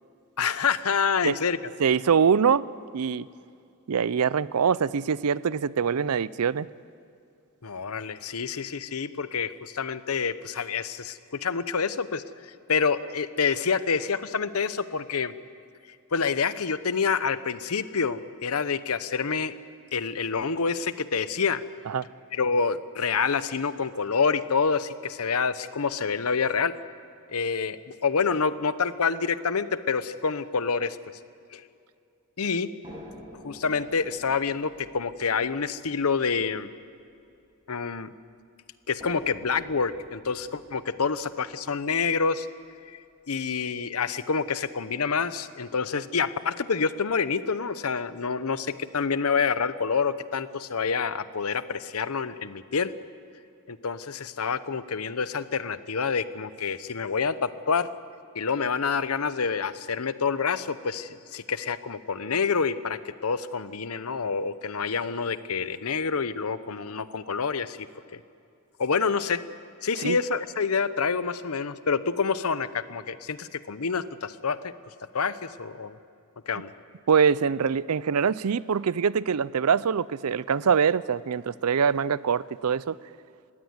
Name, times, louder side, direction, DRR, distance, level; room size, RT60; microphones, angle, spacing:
voice 1, 0.4-1.6 7.6-15.3 16.1-19.5 19.9-21.6 22.3-26.7 27.3-31.0 31.5-31.6 32.4-32.7 33.3-36.7 37.7-38.1 38.9-42.5 42.9-43.0 43.3-52.9 53.7-57.9 58.3-67.8 68.1-68.2 68.8-69.4 69.8-74.7 75.1-76.0 76.5-76.7, left 5 dB, 75° left, 14 dB, 0.8 m, -27 dB
voice 2, 1.8-2.7 2.9-3.3 3.9-6.7 21.9-22.0 70.0-70.2 77.1-83.0, right 6 dB, 85° right, 19 dB, 0.5 m, -24 dB
sound 1, 32.8-38.1 39.0-43.0 43.9-44.0 44.5-44.6, equal, 20° right, 6.7 m, -49 dB
19.5 x 16.0 x 9.7 m, 2.5 s
head